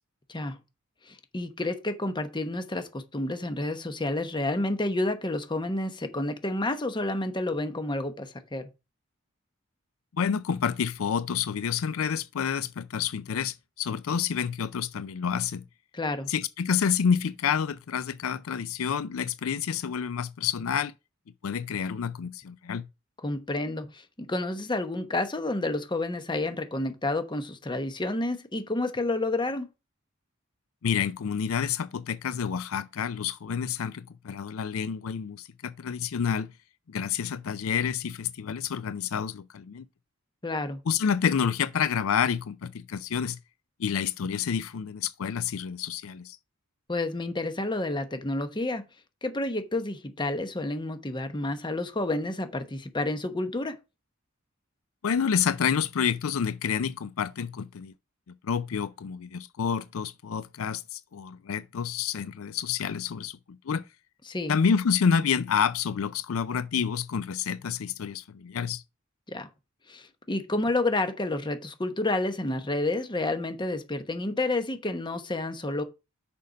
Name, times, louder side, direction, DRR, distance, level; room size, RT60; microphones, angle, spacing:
voice 1, 1.1-8.7 15.9-16.3 23.2-29.7 40.4-40.8 46.9-48.8 49.2-53.8 64.3-64.5 69.3-69.5 69.9-75.8, left 2 dB, 20° left, 1.0 m, -30 dB
voice 2, 10.1-15.6 16.3-20.9 21.4-22.9 30.8-36.5 36.9-39.9 40.9-43.4 43.8-46.4 55.0-57.9 58.3-63.8 64.5-68.8, left 7 dB, 75° left, 0.4 m, -29 dB
6.5 x 5.3 x 5.2 m
head